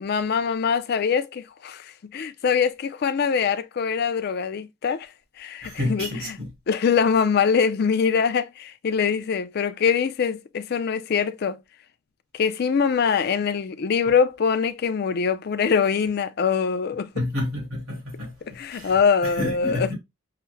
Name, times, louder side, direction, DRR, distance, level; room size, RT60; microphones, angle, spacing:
voice 1, 0.0-5.1 5.4-6.4 6.7-11.6 12.3-17.3 18.5-19.9, left 6 dB, 45° left, 0.3 m, -23 dB
voice 2, 5.6-6.5 17.1-18.3 18.7-18.9 19.4-19.9, left 1 dB, 75° right, 2.3 m, -29 dB
5.6 x 2.0 x 3.2 m
head